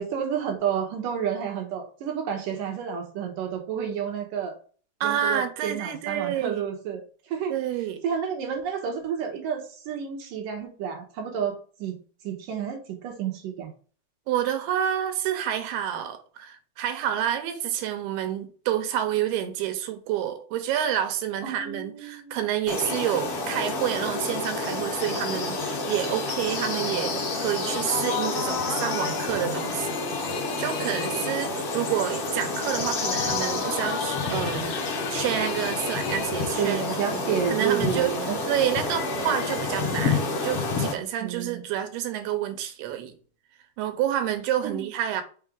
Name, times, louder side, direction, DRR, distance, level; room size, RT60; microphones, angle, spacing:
voice 1, 0.0-4.6 5.0-7.5 8.0-12.0 12.2-13.7 21.4-22.4 36.6-38.4 41.2-41.6 44.6-44.9, right 8 dB, 65° right, 2.6 m, -30 dB
voice 2, 5.0-6.6 7.5-8.0 14.3-36.8 37.1-38.1 38.5-43.1 43.8-45.2, right 10 dB, 85° right, 2.9 m, -29 dB
sound 1, 22.7-40.9, left 3 dB, 50° left, 1.9 m, -29 dB
sound 2, 27.3-37.0, left 7 dB, 70° left, 1.9 m, -35 dB
6.0 x 4.5 x 3.8 m
omnidirectional pair, 4.5 m